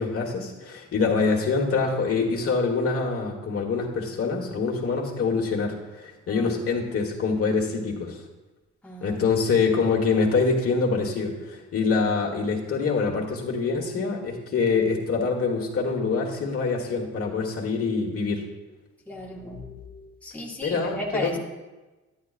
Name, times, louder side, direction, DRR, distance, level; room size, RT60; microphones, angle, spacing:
voice 1, 0.0-8.2 9.0-18.4 20.6-21.4, left 4 dB, 50° left, 0 dB, 1.4 m, -25 dB
voice 2, 6.3-6.6 8.8-9.2 19.1-21.4, left 1 dB, 5° left, -3 dB, 1.3 m, -36 dB
9.8 x 9.2 x 2.5 m, 1.1 s
cardioid pair, 90°, 30 cm